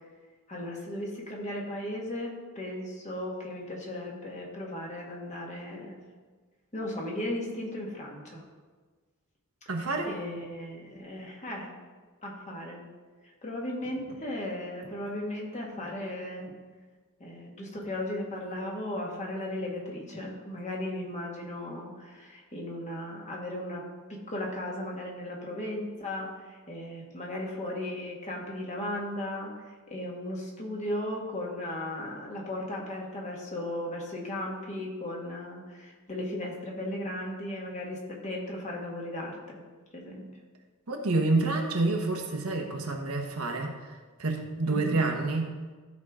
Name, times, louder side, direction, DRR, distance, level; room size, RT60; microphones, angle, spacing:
voice 1, 0.5-6.0 6.7-8.4 10.0-11.7 12.2-12.8 13.4-16.5 17.2-23.8 24.1-39.6 39.9-40.3 44.7-45.0, left 1 dB, 35° left, -2 dB, 1.7 m, -36 dB
voice 2, 9.7-10.1 40.9-43.7 44.2-45.5, right 2 dB, 75° right, 3 dB, 1.2 m, -28 dB
13.0 x 4.7 x 3.7 m, 1.4 s
head